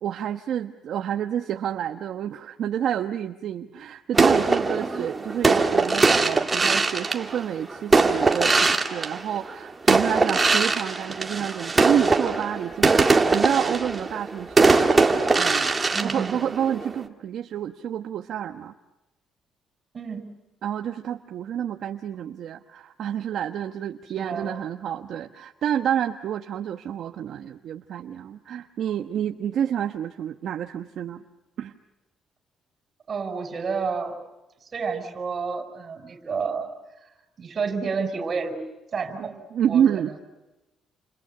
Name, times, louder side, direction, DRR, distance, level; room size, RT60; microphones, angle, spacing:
voice 1, 0.0-14.8 15.4-15.7 16.0-18.7 20.6-31.2 31.6-31.7 39.2-40.1, right 9 dB, 60° right, 5 dB, 1.2 m, -29 dB
sound 1, 4.1-9.5 9.9-17.0, right 3 dB, 20° right, 2.1 m, -21 dB
voice 2, 15.9-16.4 19.9-20.3 24.2-24.5 33.1-34.2 34.7-36.7 37.4-38.6 38.9-39.3 39.6-39.8, right 5 dB, 35° right, 8 dB, 5.2 m, -30 dB
29.5 x 29.0 x 6.7 m, 1.0 s
cardioid pair, 145°, 0 cm